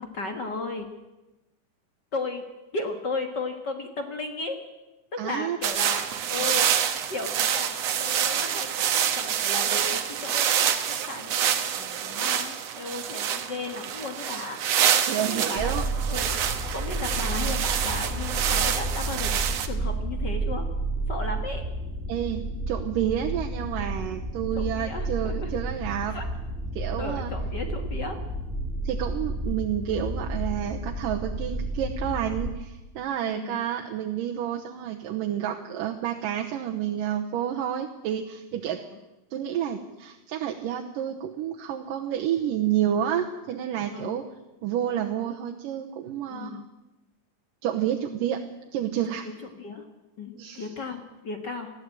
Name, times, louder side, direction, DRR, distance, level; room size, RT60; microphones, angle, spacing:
voice 1, 0.1-0.9 2.1-2.4 2.7-4.6 5.1-10.7 11.1-14.6 15.2-16.4 16.7-19.4 19.6-20.7 21.1-21.6 24.5-25.5 26.0-26.2 27.0-28.2 33.2-33.6 43.9-44.2 46.3-46.7 49.2-49.9 50.2-51.7, left 3 dB, 45° left, 5 dB, 1.4 m, -35 dB
voice 2, 5.2-5.6 15.1-15.9 22.1-26.2 26.7-27.3 28.8-38.8 39.3-44.2 44.6-46.6 47.6-48.4 48.7-49.2 50.4-50.7, right 10 dB, 75° right, 1 dB, 2.6 m, -29 dB
sound 1, 5.6-19.7, right 9 dB, 60° right, 1.9 m, -27 dB
sound 2, 15.6-32.5, right 2 dB, 15° right, 0.4 m, -31 dB
19.5 x 14.5 x 9.0 m, 1.0 s
omnidirectional pair, 4.0 m